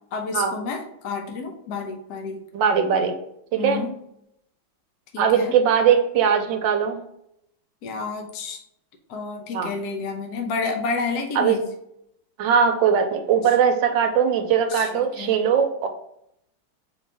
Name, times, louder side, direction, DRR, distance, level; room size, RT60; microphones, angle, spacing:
voice 1, 0.1-2.4 3.5-3.9 5.1-5.5 7.8-8.6 9.1-11.6 14.7-15.4, left 4 dB, 60° left, 3 dB, 1.1 m, -30 dB
voice 2, 2.5-3.1 3.5-3.8 5.2-7.0 9.5-9.7 11.4-11.6 12.4-15.9, right 7 dB, 75° right, 5 dB, 1.3 m, -20 dB
4.2 x 3.2 x 3.4 m, 0.76 s
omnidirectional pair, 2.2 m